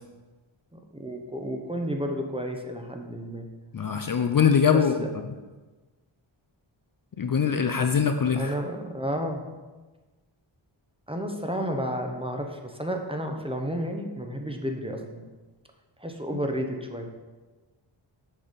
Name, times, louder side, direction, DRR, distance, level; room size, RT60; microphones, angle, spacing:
voice 1, 0.7-3.5 4.7-5.1 8.3-9.5 11.1-15.3 16.0-17.1, equal, 10° right, 3 dB, 0.8 m, -32 dB
voice 2, 3.7-4.9 7.2-8.5, left 7 dB, 45° left, 6 dB, 0.5 m, -22 dB
6.5 x 5.6 x 5.1 m, 1.3 s
wide cardioid pair, 80°, 49 cm